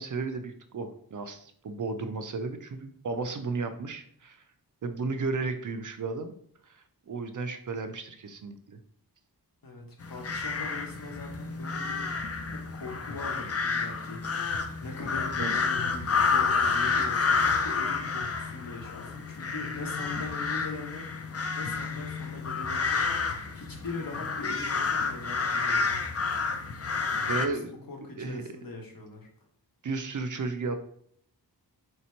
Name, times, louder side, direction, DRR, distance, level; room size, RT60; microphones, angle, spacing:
voice 1, 0.0-4.4 4.8-6.3 6.6-8.8 15.4-15.6 27.1-27.7 28.2-28.4 29.8-30.8, right 4 dB, 50° right, 8 dB, 0.4 m, -34 dB
voice 2, 9.6-12.1 12.4-21.1 21.5-23.1 23.5-25.8 27.6-29.3, left 3 dB, 55° left, 0 dB, 1.0 m, -41 dB
sound 1, 10.0-27.5, left 5 dB, 35° left, 0.4 m, -29 dB
3.3 x 2.9 x 4.3 m, 0.65 s
wide cardioid pair, 75°, 41 cm